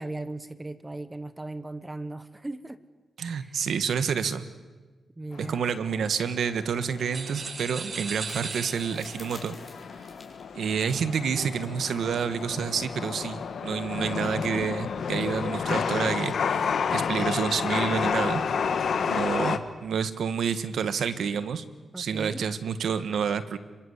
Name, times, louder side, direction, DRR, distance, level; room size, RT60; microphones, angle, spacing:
voice 1, 0.0-2.8 3.4-3.7 5.2-5.7 21.9-22.4, right 2 dB, 20° right, 13 dB, 1.1 m, -37 dB
voice 2, 3.2-4.4 5.4-9.6 10.5-16.6 16.9-18.4 19.1-21.6 22.0-23.6, right 7 dB, 80° right, 12 dB, 1.5 m, -29 dB
Chatter / Subway metro underground, 5.3-19.6, left 6 dB, 70° left, 1.5 m, -30 dB
sound 1, 7.1-9.3, right 5 dB, 55° right, 1.3 m, -37 dB
sound 2, 7.8-11.6, left 3 dB, 25° left, 6.0 m, -51 dB
26.5 x 23.0 x 8.2 m, 1.3 s
cardioid pair, 90°, 0 cm